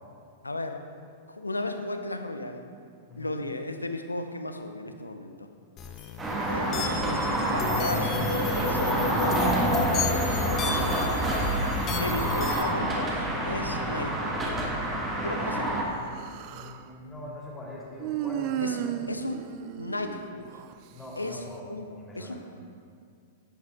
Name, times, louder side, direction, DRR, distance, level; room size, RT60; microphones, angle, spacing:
voice 1, 0.4-0.9 1.3-2.7 3.2-5.5 6.5-11.1 12.0-14.3 15.2-15.8 18.6-19.4 19.8-20.5 21.2-21.4 21.7-21.9 22.1-22.4, left 2 dB, 90° left, 7 dB, 0.7 m, -35 dB
voice 2, 3.1-3.4 15.6-15.8 16.5-19.2 20.9-21.6 21.9-22.4, left 1 dB, 10° left, -4 dB, 2.5 m, -43 dB
sound 1, 5.8-12.6, left 5 dB, 30° left, 1.0 m, -32 dB
sound 2, 6.2-15.8, right 1 dB, 20° right, 1.7 m, -27 dB
Human voice, 15.9-16.8 18.0-20.7, right 11 dB, 45° right, 0.4 m, -34 dB
11.5 x 8.1 x 3.6 m, 2.2 s
figure-of-eight pair, 100°, 0 cm